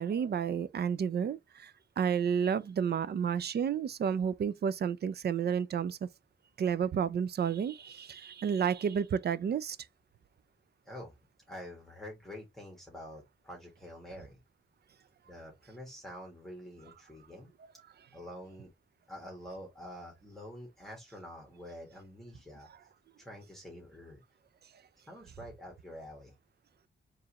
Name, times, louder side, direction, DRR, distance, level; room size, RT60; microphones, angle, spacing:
voice 1, 0.0-6.1 6.6-9.8, right 7 dB, 55° right, 0.5 m, -31 dB
voice 2, 10.8-11.2 11.5-14.4 15.2-17.5 18.1-18.7 19.1-22.7 23.2-24.2 25.0-26.3, equal, ahead, 1.6 m, -47 dB
4.5 x 3.2 x 2.9 m
cardioid pair, 95°, 20 cm